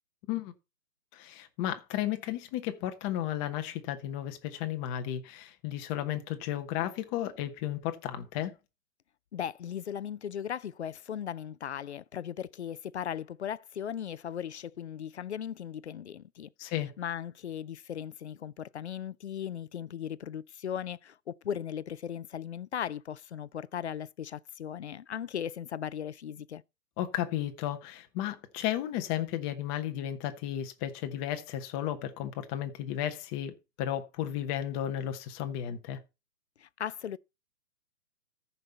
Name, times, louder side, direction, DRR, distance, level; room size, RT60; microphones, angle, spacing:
voice 1, 1.1-8.5 16.6-16.9 27.0-36.0, left 12 dB, 15° left, 0.9 m, -34 dB
voice 2, 9.3-26.6 36.6-37.2, left 9 dB, 45° left, 0.5 m, -37 dB
14.0 x 5.5 x 4.1 m
hypercardioid pair, 140°, 48 cm